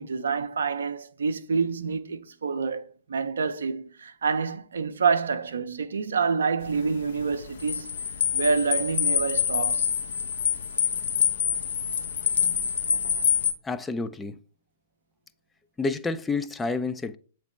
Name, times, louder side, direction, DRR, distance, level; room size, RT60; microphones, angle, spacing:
voice 1, 0.0-8.0 8.3-9.9, right 5 dB, 65° right, 0.6 m, -27 dB
sound 1, 6.6-13.5, left 8 dB, 60° left, 0.7 m, -26 dB
voice 2, 13.6-14.4 15.8-17.2, left 3 dB, 10° left, 0.4 m, -29 dB
8.0 x 3.3 x 4.3 m
figure-of-eight pair, 110°, 0 cm